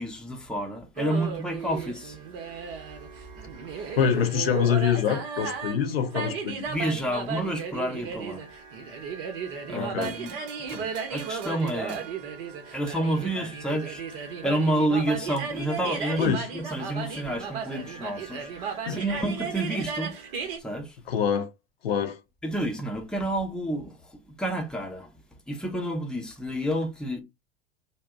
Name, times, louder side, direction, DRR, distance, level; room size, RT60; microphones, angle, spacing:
voice 1, 0.0-2.2 3.7-4.0 6.7-8.5 9.7-10.3 10.7-12.0 12.7-20.1 20.6-21.0 22.4-25.1 25.5-27.2, right 1 dB, 5° left, 0.7 m, -30 dB
sound 1, 1.0-20.6, right 6 dB, 55° right, 0.8 m, -35 dB
voice 2, 4.0-6.7 9.7-10.2 16.2-16.5 18.9-19.0 21.1-21.5 21.8-22.2, left 8 dB, 75° left, 0.6 m, -25 dB
sound 2, 10.0-13.3, right 10 dB, 40° right, 0.4 m, -47 dB
2.6 x 2.1 x 3.5 m
figure-of-eight pair, 80°, 30 cm